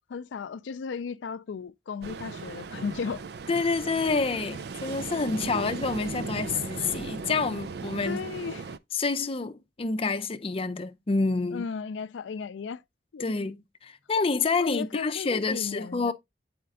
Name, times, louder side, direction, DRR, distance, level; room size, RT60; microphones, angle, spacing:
voice 1, 0.1-3.2 5.5-5.8 6.0-6.6 8.0-8.6 11.5-12.8 13.1-13.3 14.6-16.1, left 5 dB, 85° left, 0.4 m, -35 dB
Ocean, 2.0-8.8, right 4 dB, 60° right, 0.4 m, -37 dB
voice 2, 3.5-8.2 8.9-11.7 13.2-13.6 13.8-16.1, left 4 dB, 30° left, 0.5 m, -28 dB
7.7 x 4.3 x 3.6 m
head